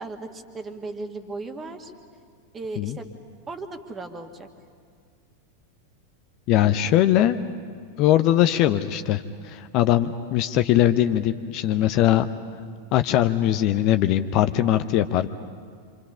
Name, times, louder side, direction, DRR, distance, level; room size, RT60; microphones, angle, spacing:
voice 1, 0.0-1.9 2.5-3.1 3.5-4.5, right 3 dB, 20° right, 6 dB, 1.8 m, -36 dB
voice 2, 6.5-7.4 8.0-12.3 12.9-15.3, left 12 dB, 40° left, 10 dB, 0.7 m, -21 dB
26.5 x 26.0 x 5.7 m, 2.1 s
figure-of-eight pair, 90°, 0 cm